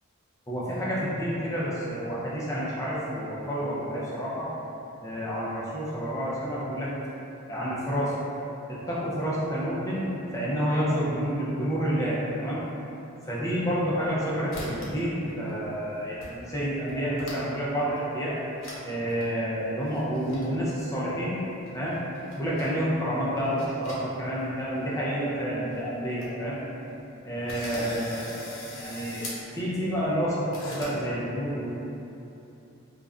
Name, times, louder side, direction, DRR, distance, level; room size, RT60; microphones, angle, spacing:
voice 1, 0.5-4.5 5.0-6.9 7.5-8.1 8.7-12.6 13.3-18.4 18.8-21.4 21.7-22.0 22.4-26.6 27.2-31.8, equal, 15° left, -8 dB, 0.4 m, -29 dB
sound 1, 13.6-14.2 14.5-15.0 15.3-15.8 16.2-16.3 16.6-17.6 18.0-18.1 18.6-18.8 19.1-19.2 19.8-20.4 21.7-22.7 23.3-24.4 24.7-24.8 25.4-25.5 25.7-25.8 26.0-26.3 26.8-26.9 27.5-29.4 30.5-30.9, left 1 dB, 75° left, 0.7 m, -40 dB
2.5 x 2.1 x 3.5 m, 2.9 s
head